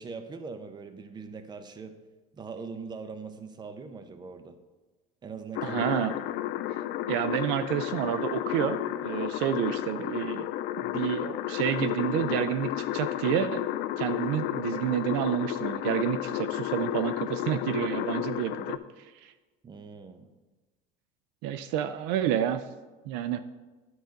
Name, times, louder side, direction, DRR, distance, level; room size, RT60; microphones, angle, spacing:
voice 1, 0.0-2.0 2.3-4.5 5.2-5.8 19.6-20.3, right 5 dB, 20° right, 9 dB, 0.7 m, -41 dB
sound 1, 5.5-18.8, left 13 dB, 60° left, 0.4 m, -32 dB
voice 2, 5.6-6.2 7.1-10.5 10.8-13.6 14.0-18.8 19.2-19.3 21.4-22.6 23.1-23.4, right 10 dB, 70° right, 11 dB, 0.5 m, -29 dB
10.5 x 4.0 x 5.1 m, 1.2 s
supercardioid pair, 120°, 19 cm